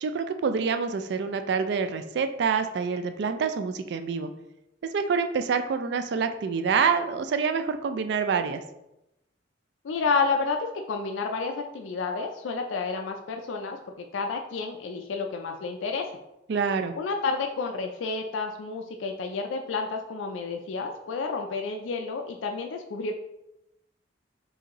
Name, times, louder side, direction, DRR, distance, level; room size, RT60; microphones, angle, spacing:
voice 1, 0.0-4.3 4.8-8.6 16.5-16.9, right 5 dB, 60° right, 9 dB, 0.3 m, -27 dB
voice 2, 9.8-16.1 17.0-23.1, left 4 dB, 85° left, 4 dB, 0.4 m, -30 dB
4.8 x 2.6 x 2.9 m, 0.89 s
head